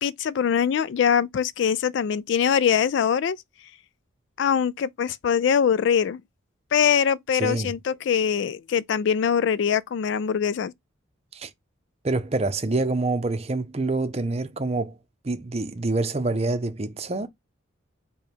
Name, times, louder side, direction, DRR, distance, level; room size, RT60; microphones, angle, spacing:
voice 1, 0.0-3.4 4.4-6.2 6.7-10.7, left 7 dB, 60° left, 0.3 m, -23 dB
voice 2, 7.4-7.7 11.3-11.5 12.0-15.0 15.2-17.3, right 2 dB, 30° right, 0.6 m, -26 dB
5.1 x 2.3 x 4.4 m
head